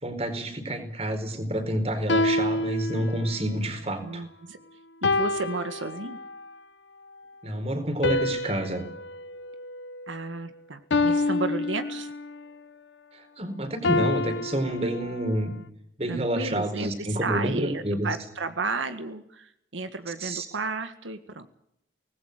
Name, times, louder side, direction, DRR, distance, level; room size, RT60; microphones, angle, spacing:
voice 1, 0.0-4.2 7.4-8.8 13.1-15.5 16.0-18.1 20.2-20.5, right 1 dB, 35° right, 8 dB, 4.4 m, -29 dB
sound 1, 2.1-3.5 5.0-6.4 8.0-10.4 10.9-12.4 13.8-15.4, left 2 dB, 65° left, 0.7 m, -28 dB
voice 2, 4.0-4.6 5.0-6.2 10.1-12.1 16.1-21.5, right 3 dB, 90° right, 9 dB, 1.8 m, -33 dB
24.5 x 19.5 x 6.7 m, 0.75 s
head